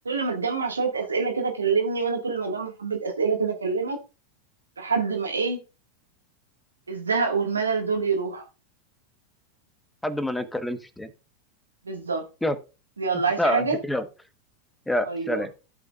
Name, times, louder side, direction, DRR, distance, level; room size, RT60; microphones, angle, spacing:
voice 1, 0.0-4.0 4.8-5.6 6.9-8.4 11.8-12.2 13.0-13.8 15.0-15.5, right 5 dB, 85° right, 1.6 m, -26 dB
voice 2, 10.0-11.1 12.4-12.6 13.4-14.0 14.9-15.5, left 1 dB, 5° left, 1.0 m, -27 dB
15.5 x 5.8 x 2.3 m
hypercardioid pair, 95°, 0 cm